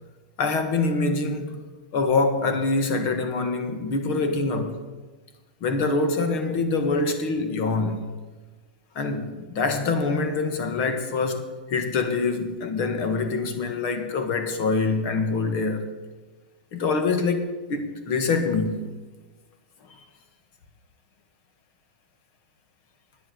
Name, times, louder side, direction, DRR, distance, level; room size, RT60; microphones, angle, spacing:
voice 1, 0.4-1.6 1.9-4.8 5.6-8.0 9.0-15.9 16.7-18.8, left 3 dB, 45° left, 1.8 m, -25 dB
10.0 x 7.8 x 9.5 m
supercardioid pair, 140°, 5 cm